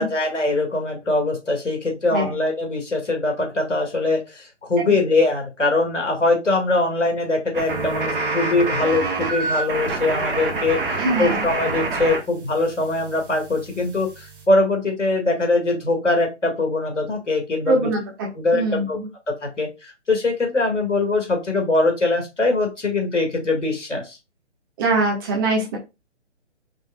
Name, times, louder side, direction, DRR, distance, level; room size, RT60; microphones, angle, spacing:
voice 1, 0.0-10.8 11.2-17.9 18.4-19.0 19.3-24.2, left 2 dB, 80° left, 3 dB, 2.0 m, -22 dB
sound 1, 7.5-12.2 12.5-14.4, right 3 dB, 45° right, 1.4 m, -27 dB
voice 2, 11.0-11.4 17.7-18.0 18.5-19.1 24.8-25.8, right 2 dB, 20° right, -1 dB, 1.0 m, -22 dB
5.3 x 3.6 x 2.2 m, 0.25 s
figure-of-eight pair, 145°, 36 cm